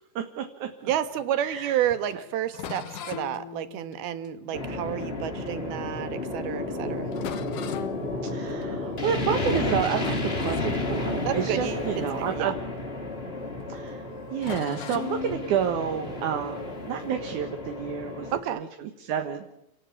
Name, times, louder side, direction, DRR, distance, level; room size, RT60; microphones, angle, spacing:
voice 1, 0.2-0.7 1.4-1.8 8.2-12.5 13.7-14.0 14.3-19.5, right 8 dB, 60° right, 5 dB, 2.6 m, -30 dB
sound 1, 0.8-5.8 6.4-6.5 6.8-6.9 7.1-9.1 9.4-9.7 9.9-13.3 13.6-13.8 14.4-17.4, left 9 dB, 65° left, 2.6 m, -41 dB
voice 2, 0.8-7.1 11.3-12.5 18.3-18.6, right 11 dB, 85° right, 11 dB, 3.2 m, -30 dB
sound 2, 4.5-18.4, left 2 dB, 20° left, 2.4 m, -32 dB
29.0 x 18.0 x 8.5 m, 0.81 s
omnidirectional pair, 4.3 m